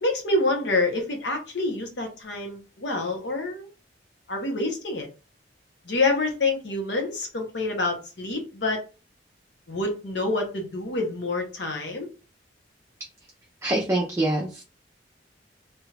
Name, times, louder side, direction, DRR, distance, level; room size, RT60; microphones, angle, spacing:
voice 1, 0.0-3.7 4.3-5.1 5.8-8.8 9.7-12.1, left 2 dB, 70° left, 3 dB, 0.9 m, -27 dB
voice 2, 13.6-14.6, right 1 dB, 15° right, -2 dB, 0.5 m, -25 dB
2.9 x 2.4 x 3.3 m, 0.32 s
head